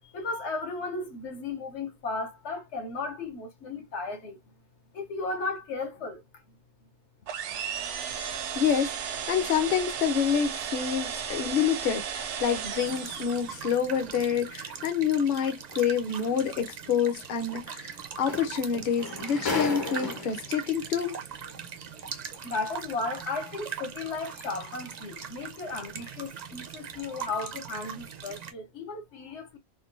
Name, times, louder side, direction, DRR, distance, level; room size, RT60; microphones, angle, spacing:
voice 1, 0.1-4.4 4.9-6.2 22.4-29.6, left 3 dB, 70° left, 1.0 m, -35 dB
sound 1, 7.3-13.8, right 8 dB, 75° right, 0.9 m, -35 dB
voice 2, 8.6-21.2, left 7 dB, 55° left, 0.8 m, -27 dB
sound 2, 12.8-28.5, right 7 dB, 55° right, 0.4 m, -41 dB
sound 3, 16.1-16.2 17.9-18.0 18.3-20.5 21.5-21.6, left 3 dB, 30° left, 0.4 m, -33 dB
3.6 x 2.2 x 2.4 m
omnidirectional pair, 1.2 m